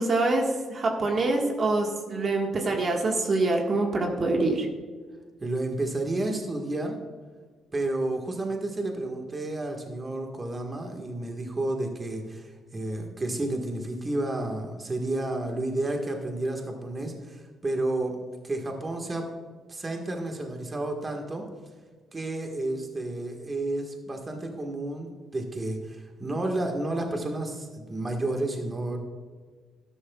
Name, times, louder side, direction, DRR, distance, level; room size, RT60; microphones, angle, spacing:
voice 1, 0.0-4.7, right 2 dB, 45° right, 1 dB, 1.6 m, -25 dB
voice 2, 5.4-7.0 7.7-18.1 18.4-19.2 19.7-21.4 22.1-29.0, right 2 dB, 25° right, 2 dB, 1.6 m, -31 dB
13.0 x 11.0 x 2.4 m, 1.5 s
cardioid pair, 90°, 0 cm